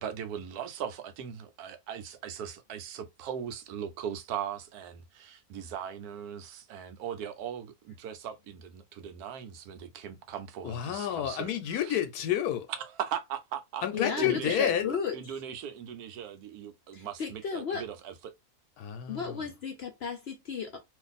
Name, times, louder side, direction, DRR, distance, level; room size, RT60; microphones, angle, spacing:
voice 1, 0.0-11.5 11.7-12.0 12.7-14.7 15.1-18.3, right 8 dB, 90° right, 1.1 m, -39 dB
voice 2, 10.6-12.7 13.8-14.9 18.8-19.5, left 10 dB, 85° left, 1.1 m, -30 dB
voice 3, 13.9-15.4 16.9-17.9 19.1-20.8, left 6 dB, 60° left, 0.7 m, -34 dB
2.6 x 2.5 x 3.9 m
omnidirectional pair, 1.6 m